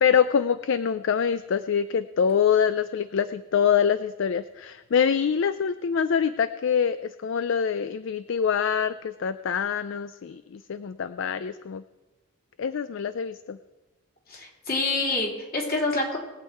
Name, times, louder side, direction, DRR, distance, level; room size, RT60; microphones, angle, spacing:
voice 1, 0.0-11.8 12.6-13.6, left 7 dB, 65° left, 13 dB, 0.4 m, -25 dB
voice 2, 14.3-16.2, left 2 dB, 45° left, -1 dB, 3.3 m, -27 dB
20.5 x 8.2 x 4.6 m, 1.2 s
head